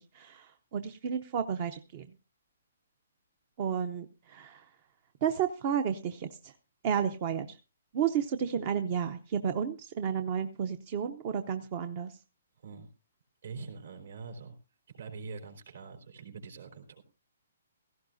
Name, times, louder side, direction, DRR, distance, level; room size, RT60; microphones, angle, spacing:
voice 1, 0.0-2.1 3.6-4.7 5.2-6.5 6.8-7.6 7.9-12.1, right 8 dB, 25° right, 10 dB, 0.6 m, -32 dB
voice 2, 13.4-14.6 15.0-17.0, right 4 dB, 60° right, 6 dB, 3.9 m, -44 dB
17.0 x 15.5 x 2.6 m, 0.30 s
hypercardioid pair, 175°, 0 cm